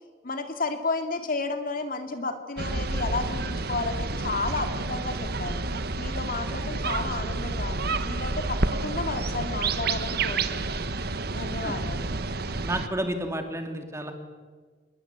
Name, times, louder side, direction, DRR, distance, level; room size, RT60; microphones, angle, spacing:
voice 1, 0.2-5.6 6.0-10.9 11.3-12.1, left 3 dB, 50° left, 7 dB, 2.5 m, -32 dB
sound 1, 2.6-12.9, right 3 dB, 60° right, 1.4 m, -29 dB
voice 2, 12.6-14.1, right 1 dB, 15° right, 5 dB, 2.9 m, -31 dB
27.0 x 21.5 x 8.3 m, 1.5 s
head